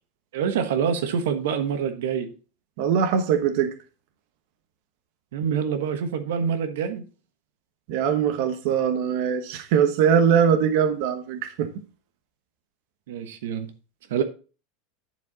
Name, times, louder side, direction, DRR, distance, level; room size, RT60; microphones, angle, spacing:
voice 1, 0.3-2.3 5.3-7.0 13.1-13.7 14.1-14.2, right 7 dB, 85° right, 1.2 m, -26 dB
voice 2, 2.8-3.7 7.9-11.7, right 7 dB, 55° right, 1.1 m, -21 dB
10.5 x 4.6 x 4.0 m
supercardioid pair, 165°, 0 cm